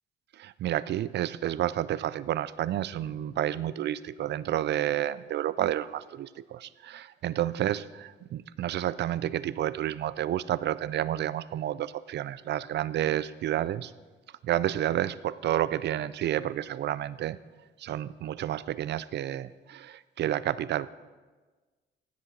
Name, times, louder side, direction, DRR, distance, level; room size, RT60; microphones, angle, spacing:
voice 1, 0.4-13.9 14.4-17.4 17.8-20.9, right 12 dB, 60° right, 18 dB, 0.4 m, -30 dB
15.5 x 8.1 x 3.9 m, 1.3 s
cardioid pair, 90°, 20 cm